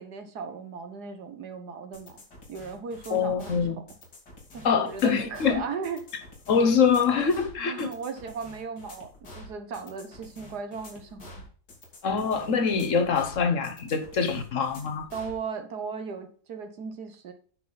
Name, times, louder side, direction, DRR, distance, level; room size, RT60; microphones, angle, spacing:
voice 1, 0.0-2.2 2.5-3.7 4.5-6.1 7.6-9.1 9.3-11.4 15.1-17.3, right 5 dB, 75° right, 1.7 m, -37 dB
sound 1, 1.9-15.4, left 1 dB, 80° left, 3.0 m, -48 dB
voice 2, 3.1-3.8 4.6-5.6 6.5-7.9 12.0-15.1, left 6 dB, 55° left, 1.3 m, -24 dB
9.3 x 5.8 x 4.0 m
omnidirectional pair, 1.7 m